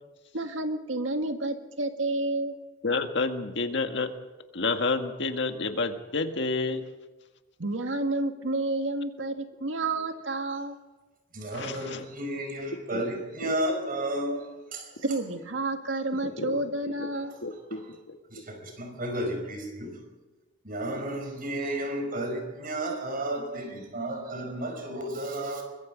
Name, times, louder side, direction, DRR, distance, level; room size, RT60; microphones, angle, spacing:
voice 1, 0.3-2.5 7.6-10.8 15.0-17.4, right 2 dB, 80° right, 6 dB, 1.9 m, -30 dB
voice 2, 2.8-4.1 4.5-6.8 11.5-12.0 12.9-13.0 13.4-13.5 16.4-16.6 17.0-17.1 17.4-18.2, left 3 dB, 65° left, 6 dB, 1.8 m, -29 dB
voice 3, 11.3-15.0 17.7-17.8 18.3-20.0 20.6-25.6, right 1 dB, 50° right, 5 dB, 5.3 m, -32 dB
24.0 x 21.0 x 5.2 m, 1.2 s
head